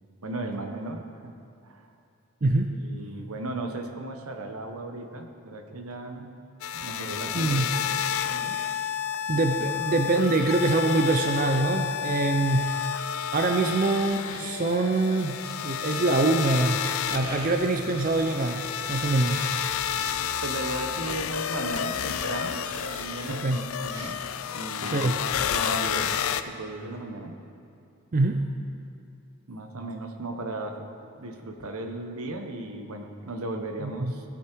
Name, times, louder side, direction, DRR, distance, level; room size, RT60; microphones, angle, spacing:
voice 1, 0.2-1.3 1.6-1.9 2.7-6.3 6.7-8.6 20.4-27.4 29.5-34.2, right 2 dB, 75° right, 5 dB, 1.2 m, -36 dB
sound 1, 6.6-26.4, left 8 dB, 70° left, 0.4 m, -30 dB
voice 2, 7.3-7.7 8.5-8.7 9.3-12.8 13.3-16.8 17.1-19.5 23.3-23.6 24.9-25.2 28.1-28.4 33.8-34.1, right 2 dB, 35° right, 4 dB, 0.5 m, -24 dB
sound 2, 14.1-23.5 23.9-26.7, right 1 dB, 20° right, 2.0 m, -46 dB
17.0 x 8.4 x 4.6 m, 2.6 s
head